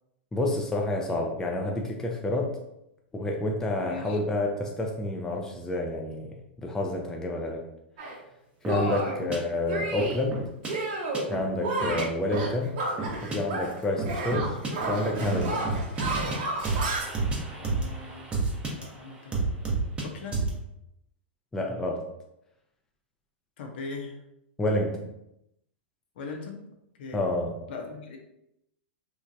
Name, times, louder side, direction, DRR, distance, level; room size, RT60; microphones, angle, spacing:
voice 1, 0.3-2.6 3.1-6.3 6.6-7.7 8.6-10.5 11.3-12.8 13.2-14.6 14.9-15.6 21.5-22.1 24.6-25.0 27.1-27.5, left 1 dB, 10° left, 0 dB, 0.3 m, -29 dB
voice 2, 3.8-4.2 8.8-9.4 17.6-18.3 18.8-20.5 23.6-24.2 26.2-26.6 27.0-27.2 27.7-28.2, left 4 dB, 60° left, 2 dB, 0.6 m, -40 dB
Shatter, 8.0-8.2 8.7-9.2 9.7-10.2 10.6-11.3 11.6-13.8 14.0-17.0, right 2 dB, 50° right, 0.8 m, -31 dB
sound 1, 8.6-8.8 9.3-9.4 10.0-10.7 11.1-11.4 11.8-12.0 12.3-12.5 13.0-13.4 14.0-14.7 15.3-16.4 16.6-18.8 19.3-20.0 20.3-20.6, right 3 dB, 20° right, 0.7 m, -30 dB
3.0 x 2.1 x 2.5 m, 0.83 s
hypercardioid pair, 105°, 6 cm